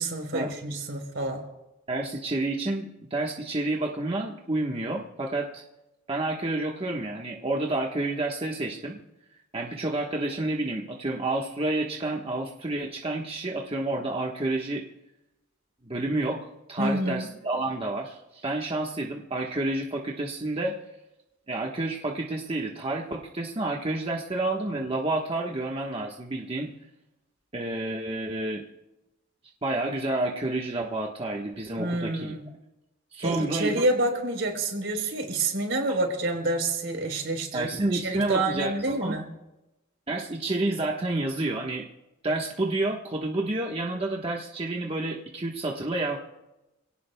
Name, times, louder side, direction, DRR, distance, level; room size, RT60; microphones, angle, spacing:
voice 1, 0.0-1.4 16.8-17.3 31.8-32.5 33.2-39.3, right 2 dB, 65° right, 3 dB, 3.8 m, -28 dB
voice 2, 1.9-5.6 6.1-9.0 9.5-14.8 15.8-20.8 21.5-26.7 27.5-28.6 29.6-32.3 33.1-33.8 37.5-39.2 40.1-41.9 42.2-46.2, right 2 dB, 30° right, -1 dB, 1.2 m, -29 dB
26.5 x 18.0 x 2.2 m, 0.97 s
head